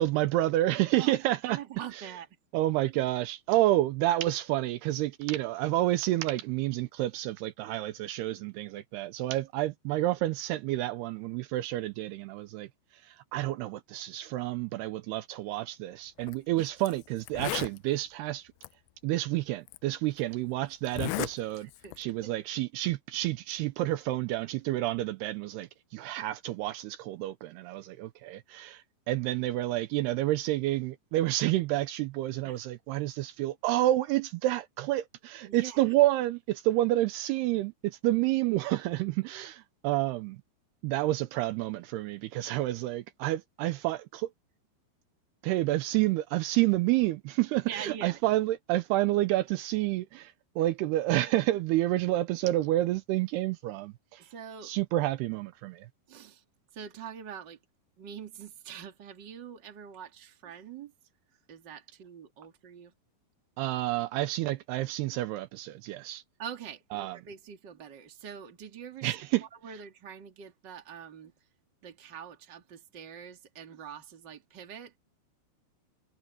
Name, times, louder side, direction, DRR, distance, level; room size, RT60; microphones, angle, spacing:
voice 1, 0.0-1.6 1.9-2.1 2.5-12.7 13.0-18.5 19.0-21.7 22.0-40.4 40.8-44.3 45.4-54.3 54.6-55.9 63.6-66.2 66.9-67.2 69.0-69.5, right 16 dB, 80° right, 2.6 m, -29 dB
voice 2, 1.4-2.3 16.6-16.7 21.8-22.3 32.4-32.6 35.4-35.9 47.7-48.2 54.3-54.7 56.1-56.4 56.7-57.6 58.0-60.9 61.5-62.9 66.4-69.1 69.4-71.3 71.8-74.9, right 8 dB, 35° right, 2.2 m, -44 dB
Zipper (clothing), 16.2-16.4 16.9-17.0 17.2-17.8 18.6-18.7 19.7-19.8 20.8-21.3 21.7-22.0, left 20 dB, 90° left, 2.1 m, -34 dB
omnidirectional pair, 4.9 m